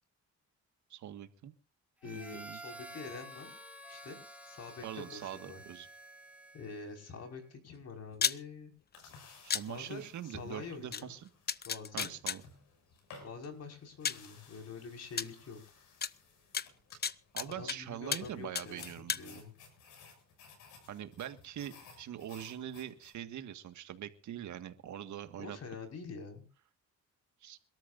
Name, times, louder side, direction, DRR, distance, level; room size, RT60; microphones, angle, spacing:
voice 1, 0.9-1.5 2.0-2.6 4.8-5.9 9.4-11.3 11.9-12.4 17.3-19.4 20.9-25.6 27.4-27.6, right 10 dB, 75° right, 9 dB, 1.8 m, -43 dB
voice 2, 2.0-3.6 3.9-4.2 4.4-5.6 6.5-8.7 9.7-11.1 11.7-12.1 13.2-15.6 17.4-18.8 19.2-19.5 25.4-26.5, left 4 dB, 55° left, 3 dB, 5.4 m, -46 dB
Harmonica, 2.0-7.0, equal, 5° right, 2.8 m, -50 dB
sound 1, 8.1-8.4 9.5-9.6 10.9-11.0 11.5-12.4 13.4-13.5 14.0-14.3 15.2-15.3 16.0-16.1 16.5-17.8 18.1-18.3 18.5-19.2, left 7 dB, 35° left, 0.7 m, -33 dB
sound 2, 8.9-23.1, left 4 dB, 85° left, 6.9 m, -58 dB
28.0 x 13.0 x 2.6 m, 0.37 s
cardioid pair, 90°, 30 cm